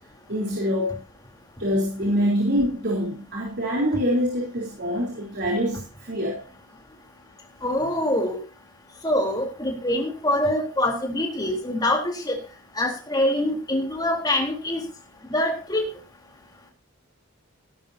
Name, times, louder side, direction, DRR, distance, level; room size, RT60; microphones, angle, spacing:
voice 1, 0.3-1.0 1.6-6.4, equal, 50° right, -2 dB, 3.8 m, -25 dB
voice 2, 7.6-8.4 9.0-12.4 12.8-14.8 15.3-15.9, left 1 dB, 20° left, 1 dB, 3.6 m, -24 dB
17.0 x 12.5 x 2.8 m, 0.34 s
head